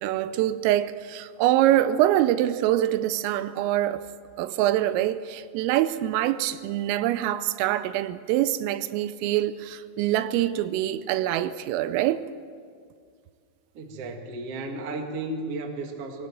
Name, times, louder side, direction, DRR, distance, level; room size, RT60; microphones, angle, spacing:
voice 1, 0.0-4.0 4.4-12.3, right 13 dB, 85° right, 3.3 m, -24 dB
voice 2, 13.7-16.3, right 2 dB, 55° right, 1.6 m, -34 dB
23.5 x 18.5 x 7.6 m
omnidirectional pair, 5.9 m